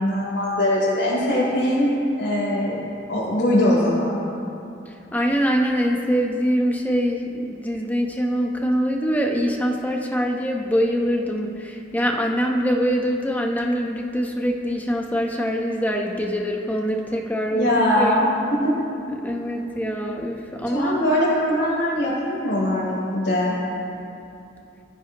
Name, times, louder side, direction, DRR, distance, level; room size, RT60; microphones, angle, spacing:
voice 1, 0.0-2.8 3.1-4.2 17.5-18.3 18.6-18.7 20.7-23.5, left 1 dB, 85° left, -9 dB, 4.0 m, -21 dB
voice 2, 4.8-18.2 19.1-21.0, equal, 10° left, 1 dB, 1.0 m, -24 dB
23.5 x 14.5 x 3.1 m, 2.6 s
head